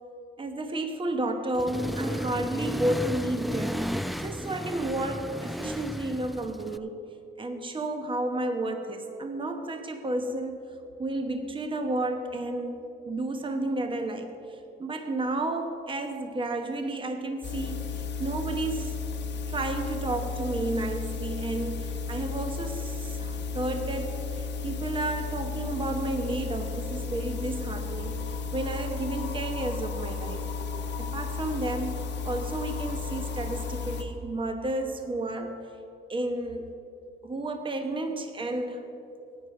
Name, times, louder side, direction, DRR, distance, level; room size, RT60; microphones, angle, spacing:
voice 1, 0.4-3.9 4.2-7.0 7.4-10.6 11.0-12.8 13.0-19.0 19.5-30.5 31.0-35.6 36.1-36.7 37.2-38.8, right 2 dB, 25° right, 5 dB, 1.0 m, -32 dB
Accelerating revving vroom, 1.6-6.8, equal, ahead, 0.3 m, -33 dB
sound 1, 17.4-34.0, left 4 dB, 65° left, 1.1 m, -34 dB
14.5 x 9.2 x 4.8 m, 2.7 s
cardioid pair, 90°, 20 cm